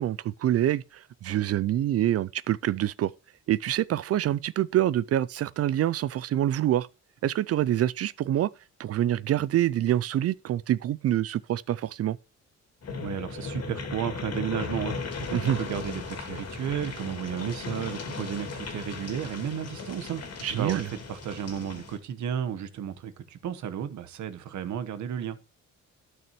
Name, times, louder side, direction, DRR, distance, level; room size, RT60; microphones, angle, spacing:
voice 1, 0.0-3.1 3.5-6.9 7.2-8.5 8.8-12.2 15.3-15.6 20.4-20.9, right 12 dB, 55° right, 0.4 m, -26 dB
sound 1, 12.8-22.0, left 4 dB, 55° left, 2.4 m, -37 dB
voice 2, 13.0-20.2 20.5-25.4, right 9 dB, 70° right, 1.2 m, -33 dB
12.0 x 6.1 x 3.0 m
cardioid pair, 90°, 30 cm